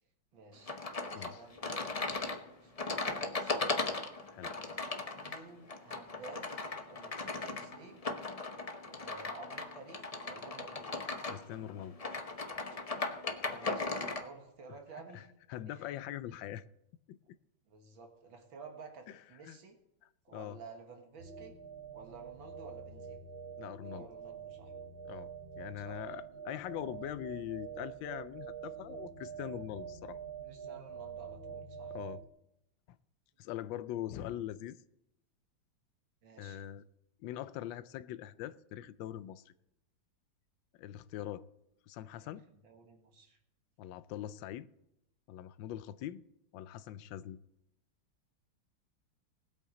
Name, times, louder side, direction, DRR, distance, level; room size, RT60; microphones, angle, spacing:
voice 1, 0.3-0.8 1.1-2.2 2.6-3.7 5.1-6.6 6.9-8.1 9.0-11.1 13.4-15.3 15.7-15.8 17.7-19.8 20.3-21.6 21.9-23.2 23.9-24.7 25.8-26.0 30.4-32.0 36.2-36.6 42.1-43.4, right 4 dB, 90° right, 2.4 m, -52 dB
sound 1, 0.7-14.3, left 3 dB, 45° left, 0.5 m, -38 dB
voice 2, 11.3-12.0 15.1-15.2 15.5-16.6 17.1-17.2 19.4-19.6 20.0-20.6 23.6-24.1 25.1-25.3 25.6-30.2 31.9-32.2 32.9-33.0 33.4-34.8 36.4-36.8 37.2-39.5 40.8-41.4 41.9-42.4 43.8-44.7 45.3-46.2 46.5-47.4, left 12 dB, 80° left, 1.3 m, -42 dB
sound 2, 21.2-32.3, right 7 dB, 55° right, 0.6 m, -46 dB
19.5 x 8.2 x 3.9 m
omnidirectional pair, 2.1 m